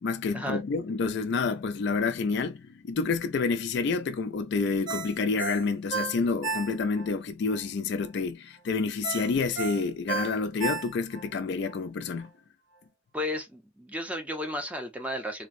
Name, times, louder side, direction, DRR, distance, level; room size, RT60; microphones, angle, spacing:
voice 1, 0.0-12.3, left 4 dB, 55° left, 0.3 m, -29 dB
Ringtone, 4.9-7.1 7.5-7.6 9.0-11.3 11.7-11.8, right 4 dB, 55° right, 0.8 m, -33 dB
voice 2, 13.1-15.5, left 1 dB, 5° right, 0.5 m, -33 dB
3.3 x 2.0 x 2.5 m
head